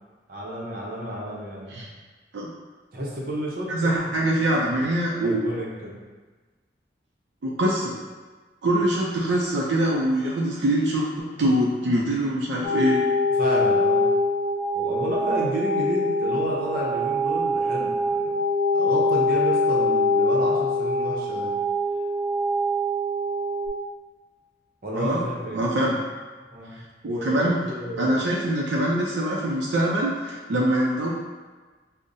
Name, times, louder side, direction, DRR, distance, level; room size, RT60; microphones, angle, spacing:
voice 1, 0.3-1.8 2.9-4.8 5.2-6.0 13.4-14.1 14.7-18.4 18.7-21.5 24.8-25.6 26.5-26.7 27.0-28.3, equal, 55° right, -4 dB, 0.7 m, -31 dB
voice 2, 3.7-5.4 7.4-7.9 8.6-13.0 24.9-25.2 25.5-26.0 27.0-27.6 28.0-31.1, right 1 dB, 80° right, -4 dB, 0.4 m, -23 dB
sound 1, 12.6-23.7, left 1 dB, 50° left, 0.4 m, -23 dB
5.3 x 2.1 x 2.6 m, 1.4 s
head